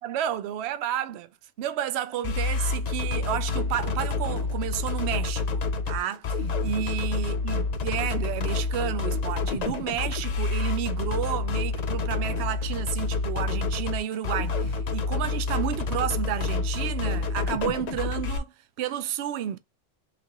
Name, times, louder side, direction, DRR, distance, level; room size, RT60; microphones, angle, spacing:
voice 1, 0.0-1.3 1.6-19.6, right 10 dB, 60° right, 0.8 m, -31 dB
sound 1, 2.2-18.4, left 4 dB, 60° left, 0.4 m, -28 dB
3.4 x 3.2 x 3.7 m
omnidirectional pair, 1.4 m